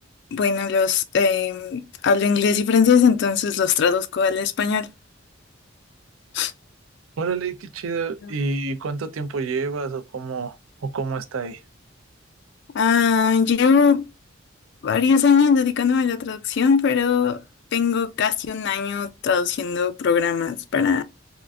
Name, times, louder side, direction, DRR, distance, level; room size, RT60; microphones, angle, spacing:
voice 1, 0.3-4.9 6.3-6.5 8.2-8.3 12.7-14.1 14.8-17.4 17.7-21.0, left 6 dB, 55° left, 0.4 m, -20 dB
voice 2, 7.2-10.5 10.8-11.6, right 4 dB, 85° right, 0.5 m, -28 dB
3.6 x 2.4 x 2.3 m
head